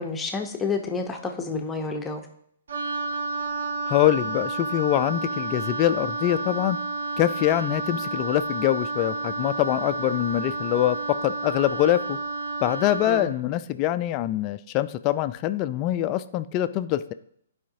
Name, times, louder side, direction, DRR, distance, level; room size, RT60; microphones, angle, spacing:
voice 1, 0.0-2.3 13.1-13.3, left 4 dB, 15° left, 3 dB, 0.8 m, -29 dB
Wind instrument woodwind instrument, 2.7-13.3, right 3 dB, 70° right, 1.0 m, -30 dB
voice 2, 3.9-6.8 7.2-12.2 12.6-17.1, left 13 dB, 30° left, 13 dB, 0.4 m, -24 dB
11.0 x 4.9 x 2.7 m, 0.70 s
figure-of-eight pair, 130°, 0 cm